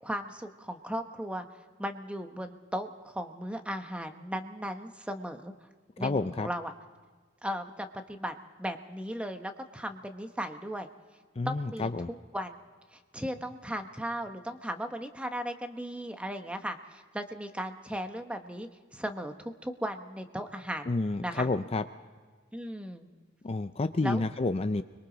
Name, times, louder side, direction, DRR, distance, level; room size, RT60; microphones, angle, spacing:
voice 1, 0.0-1.5 1.8-5.5 6.0-6.7 7.4-10.9 11.4-11.9 12.3-12.6 12.9-20.9 21.2-21.5 22.5-23.1 24.0-24.2, equal, 5° right, 6 dB, 1.0 m, -36 dB
voice 2, 6.0-6.5 11.4-12.1 20.9-21.8 23.4-24.8, left 3 dB, 30° left, 10 dB, 0.5 m, -29 dB
29.5 x 22.5 x 4.0 m, 1.5 s
head